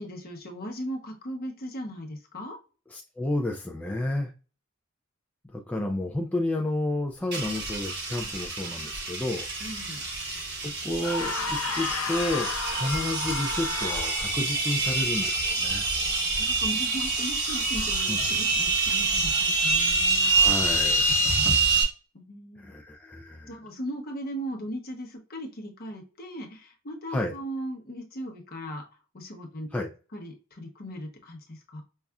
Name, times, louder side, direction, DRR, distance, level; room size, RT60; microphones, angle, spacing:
voice 1, 0.0-2.6 9.6-10.0 16.4-20.3 21.4-21.6 22.1-22.6 23.5-28.8 29.1-29.7 30.1-31.8, equal, 45° left, 2 dB, 0.8 m, -38 dB
voice 2, 2.9-4.3 5.5-9.5 10.6-15.8 18.1-18.2 20.2-21.0 22.6-23.6 27.1-27.3 29.7-29.9, left 1 dB, 5° left, 0 dB, 0.3 m, -31 dB
sound 1, 7.3-21.8, right 3 dB, 50° right, 1.3 m, -26 dB
sound 2, 11.0-14.4, left 4 dB, 80° left, 0.6 m, -32 dB
5.4 x 2.3 x 2.3 m, 0.34 s
head